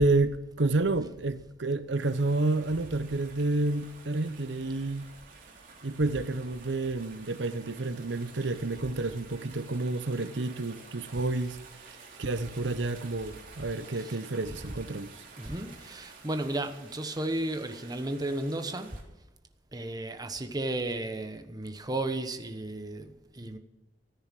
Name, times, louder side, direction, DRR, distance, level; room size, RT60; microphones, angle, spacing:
voice 1, 0.0-5.1 5.8-11.6 11.8-11.9 12.2-15.2, right 2 dB, 85° right, 0.9 m, -29 dB
sound 1, 2.0-19.0, right 4 dB, 50° right, 3.5 m, -51 dB
voice 2, 15.4-19.0 19.7-23.6, right 1 dB, 20° right, 1.2 m, -34 dB
14.5 x 9.8 x 7.6 m
head